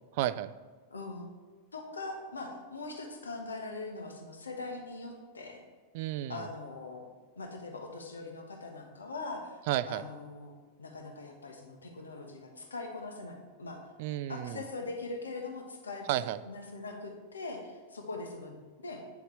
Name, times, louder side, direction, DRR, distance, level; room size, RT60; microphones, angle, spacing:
voice 1, 0.1-0.5 5.9-6.5 9.7-10.0 14.0-14.6 16.1-16.4, right 13 dB, 50° right, 14 dB, 0.3 m, -32 dB
voice 2, 0.9-1.3 1.7-5.6 6.3-7.1 7.4-9.6 9.8-10.5 10.8-13.9 14.3-16.2 16.4-19.0, left 3 dB, 75° left, 3 dB, 1.2 m, -41 dB
9.2 x 7.0 x 3.2 m, 1.5 s
figure-of-eight pair, 90°, 0 cm